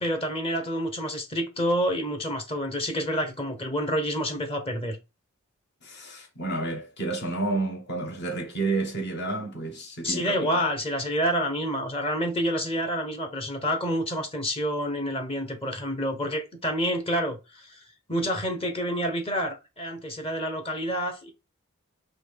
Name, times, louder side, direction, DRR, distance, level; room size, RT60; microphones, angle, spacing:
voice 1, 0.0-5.0 10.0-17.8 18.1-21.3, equal, 25° left, 0.9 m, -28 dB
voice 2, 5.8-10.5, right 2 dB, 55° left, 1.5 m, -30 dB
4.0 x 3.0 x 3.4 m
head